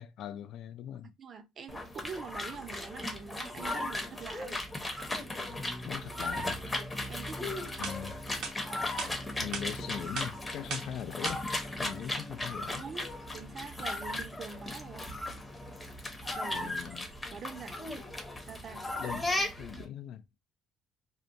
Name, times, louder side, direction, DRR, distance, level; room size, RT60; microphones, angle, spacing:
voice 1, 0.0-1.1 5.8-6.6 7.8-8.1 9.4-11.5 11.8-12.8 16.5-17.1 19.0-19.3 19.6-20.2, left 10 dB, 65° left, 0.3 m, -40 dB
voice 2, 1.2-4.6 6.8-7.9 8.3-8.4 12.7-15.2 16.3-16.7 17.3-17.8 18.4-18.9, right 6 dB, 45° right, 0.5 m, -45 dB
sound 1, 1.7-19.8, left 1 dB, 15° left, 0.7 m, -36 dB
sound 2, 7.8-8.0 8.4-8.5 9.0-9.1 9.5-9.7 10.1-10.3 10.7-10.9 11.2-11.4, right 5 dB, 70° right, 0.8 m, -36 dB
2.8 x 2.1 x 2.5 m
cardioid pair, 125°, 0 cm